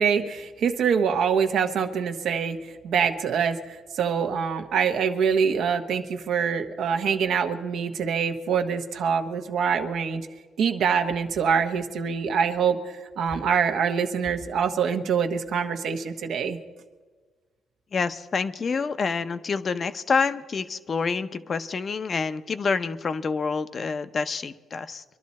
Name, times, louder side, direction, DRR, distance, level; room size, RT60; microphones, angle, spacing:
voice 1, 0.0-2.6 2.8-10.3 10.6-12.8 13.2-16.6, right 6 dB, 70° right, 6 dB, 1.0 m, -25 dB
voice 2, 17.9-25.0, left 5 dB, 45° left, 11 dB, 0.7 m, -27 dB
23.0 x 11.5 x 4.2 m, 1.4 s
cardioid pair, 90°, 0 cm